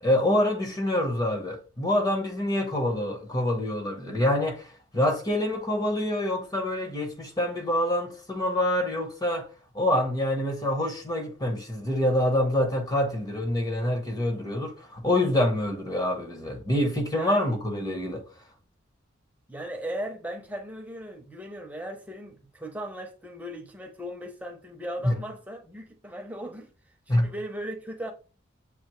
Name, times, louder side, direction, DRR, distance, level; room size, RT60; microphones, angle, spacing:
voice 1, 0.0-9.5 9.7-18.2 25.0-25.1 27.1-27.3, left 1 dB, 20° left, 0.8 m, -26 dB
voice 2, 17.2-17.6 19.5-26.7 27.1-28.1, right 1 dB, 10° right, 0.6 m, -37 dB
6.6 x 2.6 x 3.0 m
head